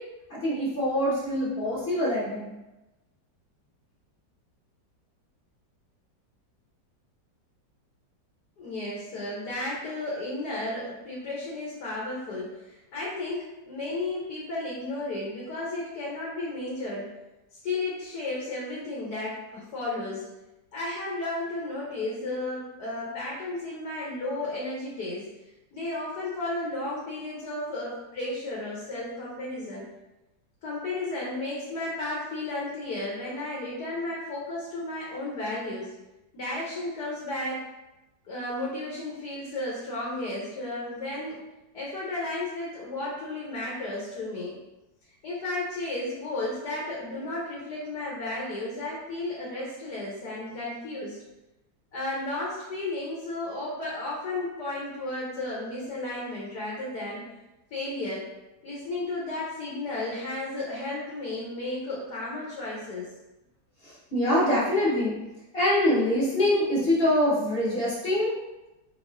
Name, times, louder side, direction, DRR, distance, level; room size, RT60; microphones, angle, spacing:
voice 1, 0.3-2.5 63.8-65.1 65.5-68.3, left 1 dB, 35° left, -7 dB, 1.2 m, -24 dB
voice 2, 8.6-17.1 17.6-20.2 20.7-25.3 25.7-29.8 30.6-35.9 36.3-37.7 38.2-41.4 41.7-44.5 45.2-51.2 51.9-57.2 57.7-58.2 58.6-63.1, left 2 dB, 65° left, -5 dB, 1.5 m, -33 dB
4.2 x 4.1 x 2.5 m, 0.99 s
omnidirectional pair, 2.0 m